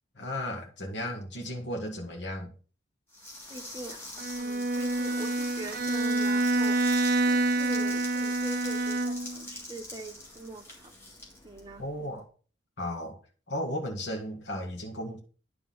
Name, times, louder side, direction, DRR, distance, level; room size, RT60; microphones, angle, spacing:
voice 1, 0.1-2.5 11.8-12.2 12.8-13.2 13.5-15.2, left 1 dB, 60° left, 1.7 m, -35 dB
sound 1, 3.1-12.1, left 1 dB, 15° left, 2.0 m, -43 dB
voice 2, 3.5-4.0 4.4-7.0 7.3-10.9 11.4-11.8, right 2 dB, 20° right, 0.9 m, -43 dB
Bowed string instrument, 4.2-9.5, right 2 dB, 45° right, 0.5 m, -27 dB
9.8 x 3.4 x 5.6 m
head